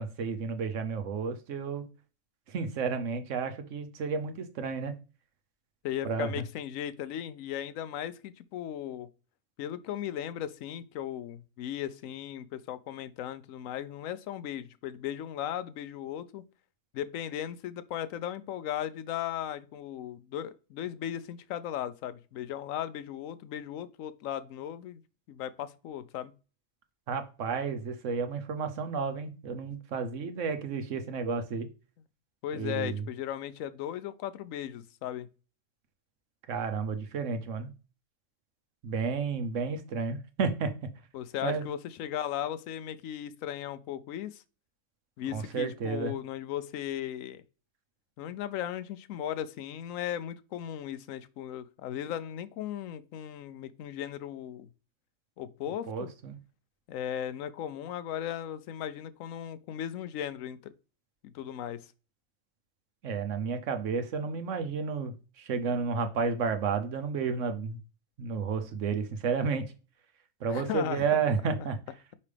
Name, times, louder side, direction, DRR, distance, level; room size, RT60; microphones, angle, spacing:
voice 1, 0.0-1.8 2.5-4.9 6.0-6.3 27.1-31.7 32.5-33.0 36.5-37.7 38.8-40.7 41.4-41.6 45.3-46.2 55.9-56.4 63.0-67.8 68.2-69.7 70.4-71.8, right 5 dB, 70° right, 1.1 m, -31 dB
voice 2, 5.8-9.1 9.6-16.4 16.9-25.0 25.3-26.3 32.4-35.3 41.1-44.4 45.2-47.4 48.2-54.7 55.4-56.1 56.9-60.6 61.2-61.9 70.5-71.0, left 10 dB, 80° left, 1.0 m, -37 dB
5.4 x 5.1 x 3.3 m
omnidirectional pair, 1.4 m